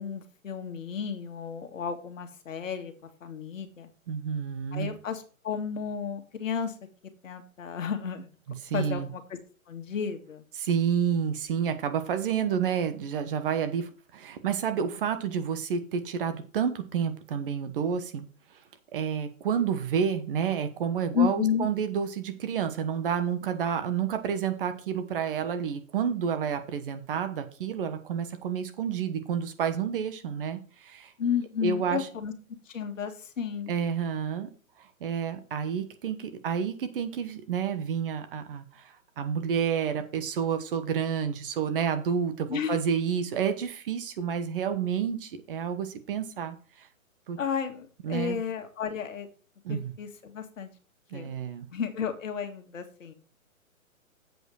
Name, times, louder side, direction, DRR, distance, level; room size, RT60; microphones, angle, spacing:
voice 1, 0.0-2.9 3.2-3.9 4.7-6.7 7.2-8.3 8.7-9.4 9.7-10.4 21.1-21.7 31.2-32.3 32.7-33.7 42.5-42.8 47.4-49.3 49.7-50.7 51.1-51.3 51.7-53.1, left 7 dB, 65° left, 6 dB, 1.9 m, -32 dB
voice 2, 4.1-4.9 8.6-9.1 10.6-18.2 18.9-31.1 31.6-32.1 33.7-34.5 34.8-46.9 47.3-47.4 48.0-48.4 49.6-49.9 51.1-51.7, right 7 dB, 40° right, 9 dB, 1.2 m, -30 dB
7.9 x 5.1 x 6.3 m, 0.38 s
hypercardioid pair, 145°, 42 cm